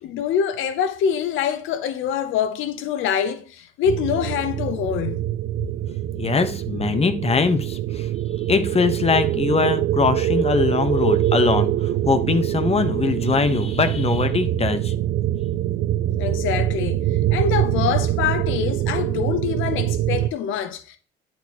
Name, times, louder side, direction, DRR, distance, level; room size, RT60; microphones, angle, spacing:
voice 1, 0.0-5.2 16.2-21.0, left 8 dB, 90° left, 0.7 m, -25 dB
sound 1, 3.8-20.3, right 13 dB, 75° right, 0.4 m, -24 dB
voice 2, 6.2-8.1 8.5-14.9, left 4 dB, 30° left, 1.1 m, -22 dB
10.5 x 4.3 x 3.0 m
cardioid pair, 90°, 20 cm